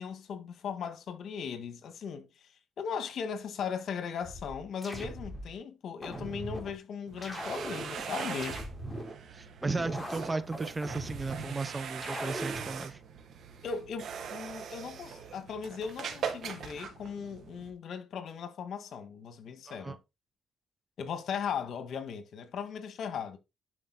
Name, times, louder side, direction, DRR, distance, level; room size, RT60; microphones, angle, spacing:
voice 1, 0.0-2.5 2.8-8.6 13.6-14.0 14.3-20.0 21.0-23.4, left 6 dB, 65° left, 1.8 m, -38 dB
sound 1, 4.2-5.5 6.0-6.7 7.2-9.1 9.6-11.5 12.0-12.7, equal, 10° left, 3.8 m, -40 dB
sound 2, 7.1-17.7, right 7 dB, 65° right, 2.0 m, -41 dB
voice 2, 9.3-13.0 19.7-20.0, right 3 dB, 25° right, 0.9 m, -35 dB
11.0 x 5.0 x 4.1 m
cardioid pair, 90°, 0 cm